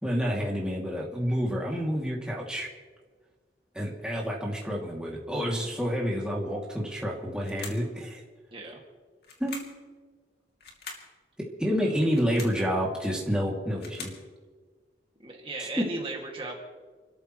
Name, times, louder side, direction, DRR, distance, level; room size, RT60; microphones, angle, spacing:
voice 1, 0.0-2.7 3.7-8.2 9.4-9.7 11.6-14.1 15.6-15.9, equal, 5° right, -3 dB, 2.7 m, -29 dB
sound 1, 7.4-7.9 9.2-9.8 10.6-11.1 12.0-12.6 13.5-14.2, left 4 dB, 60° left, 2.7 m, -43 dB
voice 2, 15.2-16.6, right 2 dB, 30° right, -1 dB, 2.3 m, -36 dB
29.5 x 13.5 x 3.2 m, 1.5 s
head